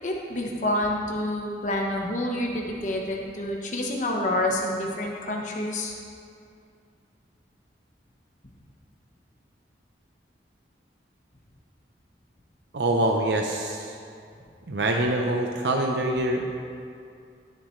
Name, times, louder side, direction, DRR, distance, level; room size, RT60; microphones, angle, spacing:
voice 1, 0.0-5.9, left 1 dB, 45° left, -1 dB, 1.2 m, -28 dB
voice 2, 12.7-14.0 14.7-16.5, right 1 dB, 75° right, 1 dB, 0.7 m, -25 dB
18.0 x 7.7 x 3.2 m, 2.4 s
head